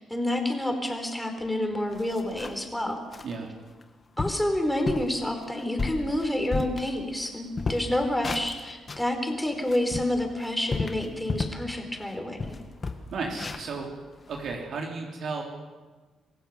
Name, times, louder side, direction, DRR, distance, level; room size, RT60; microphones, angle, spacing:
voice 1, 0.0-3.0 4.2-12.6, left 1 dB, 5° left, 4 dB, 4.3 m, -28 dB
sound 1, 1.4-1.5 1.9-2.7 3.1-3.3 3.8-3.9 4.2-4.5 4.9-5.1 5.6-7.3 7.5-9.1 9.5-11.7 12.0-12.1 12.4-14.5, left 4 dB, 35° left, 1.7 m, -33 dB
voice 2, 13.1-13.9 14.3-15.4, right 4 dB, 60° right, 0 dB, 3.4 m, -33 dB
26.5 x 15.5 x 7.0 m, 1.3 s
cardioid pair, 90°, 0 cm